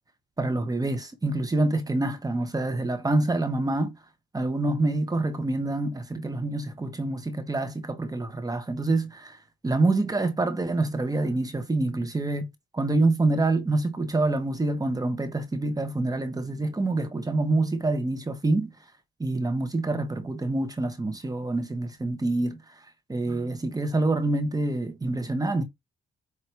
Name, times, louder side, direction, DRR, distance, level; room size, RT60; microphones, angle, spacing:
voice 1, 0.4-3.9 4.3-12.5 12.7-18.7 19.2-22.8 23.1-25.6, right 2 dB, 20° right, 1.2 m, -26 dB
8.1 x 2.8 x 4.6 m
cardioid pair, 90°, 20 cm